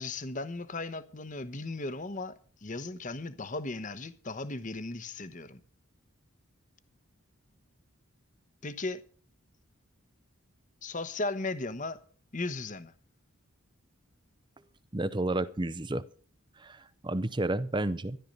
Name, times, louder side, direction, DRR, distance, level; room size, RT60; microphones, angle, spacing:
voice 1, 0.0-5.6 8.6-9.0 10.8-12.0 12.3-12.9, left 2 dB, 35° left, 1.0 m, -36 dB
voice 2, 14.9-16.0 16.6-18.2, right 2 dB, 20° right, 0.6 m, -31 dB
13.5 x 11.5 x 5.4 m
head